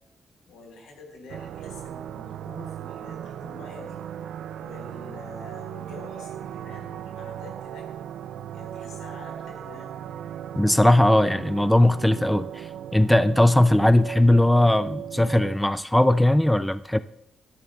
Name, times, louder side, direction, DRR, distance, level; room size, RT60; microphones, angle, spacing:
voice 1, 0.5-4.0 4.6-7.9 8.5-9.9, left 2 dB, 90° left, 1 dB, 4.6 m, -46 dB
sound 1, 1.3-15.6, right 10 dB, 85° right, 0.4 m, -37 dB
voice 2, 10.6-17.0, left 1 dB, 5° left, 13 dB, 0.3 m, -19 dB
18.0 x 12.5 x 2.3 m, 0.73 s
cardioid pair, 140°, 0 cm